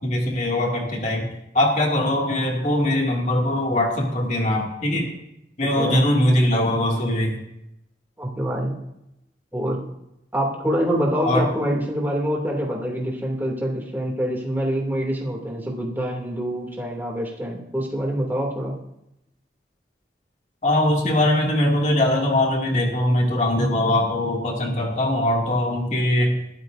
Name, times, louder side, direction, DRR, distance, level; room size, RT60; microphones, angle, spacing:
voice 1, 0.0-1.3 1.5-5.1 5.6-7.4 11.2-11.5 20.6-26.4, left 1 dB, 40° left, -1 dB, 2.4 m, -21 dB
voice 2, 8.2-8.7 9.5-9.8 10.3-18.8, equal, 10° right, -2 dB, 2.6 m, -25 dB
21.0 x 13.0 x 2.7 m, 0.84 s
head